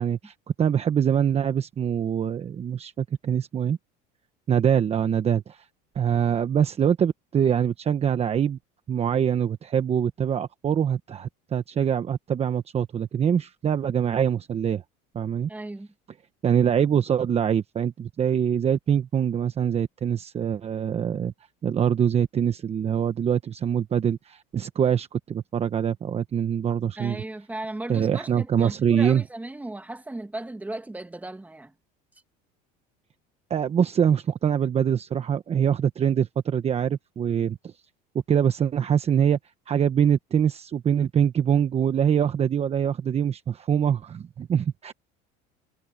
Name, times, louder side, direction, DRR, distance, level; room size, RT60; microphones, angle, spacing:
voice 1, 0.0-3.8 4.5-5.6 5.9-8.6 8.9-14.8 15.1-15.5 16.4-21.3 21.6-27.2 27.9-29.2 33.5-37.7 38.3-39.4 39.7-44.9, right 8 dB, 30° right, 1.1 m, -24 dB
voice 2, 15.5-15.9 27.0-31.7, right 2 dB, 5° right, 2.2 m, -36 dB
supercardioid pair, 120°, 21 cm